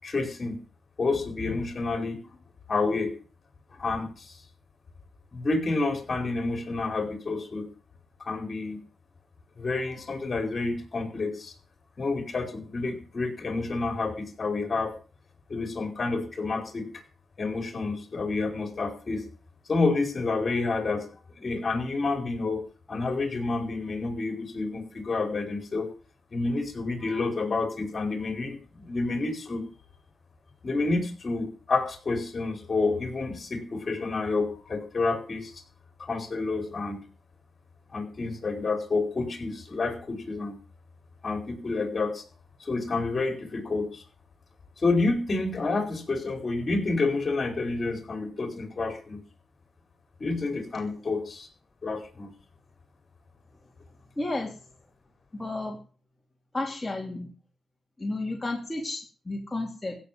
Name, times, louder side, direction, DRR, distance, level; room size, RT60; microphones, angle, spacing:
voice 1, 0.0-0.6 1.0-2.2 2.7-3.1 3.8-4.4 5.3-7.7 8.2-8.8 9.6-11.5 12.0-14.9 15.5-16.9 17.4-19.2 19.7-21.1 21.4-25.9 26.3-29.6 30.6-35.6 36.0-37.0 37.9-40.6 41.2-42.2 42.6-44.0 44.8-49.2 50.2-51.5 51.8-52.3, left 3 dB, 40° left, 6 dB, 4.8 m, -29 dB
voice 2, 54.2-54.6 55.3-55.8 56.5-57.3 58.0-60.0, left 2 dB, 20° left, 1 dB, 3.0 m, -32 dB
15.5 x 7.3 x 9.4 m, 0.38 s
cardioid pair, 80°, 0 cm